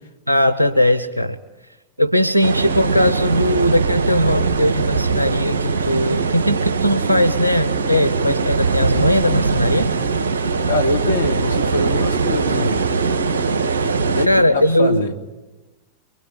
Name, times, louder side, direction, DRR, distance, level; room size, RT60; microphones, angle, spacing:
voice 1, 0.3-1.4 2.0-9.9 14.3-15.0, left 1 dB, 90° right, 0.9 m, -19 dB
sound 1, 2.4-14.3, right 4 dB, 65° right, 1.9 m, -21 dB
voice 2, 10.6-12.9 14.0-15.1, left 2 dB, 75° left, 1.9 m, -23 dB
24.0 x 23.0 x 9.6 m
figure-of-eight pair, 90°, 0 cm